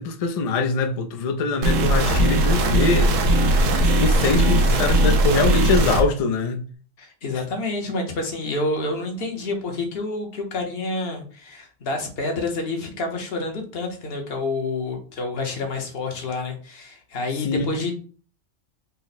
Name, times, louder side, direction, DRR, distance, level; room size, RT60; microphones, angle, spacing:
voice 1, 0.0-3.1 3.8-6.6 17.4-17.7, left 3 dB, 75° left, 0.3 m, -23 dB
sound 1, 1.6-6.0, right 1 dB, 90° right, 1.0 m, -19 dB
voice 2, 7.0-17.9, left 2 dB, 55° left, 1.0 m, -28 dB
4.1 x 2.0 x 4.0 m
omnidirectional pair, 1.3 m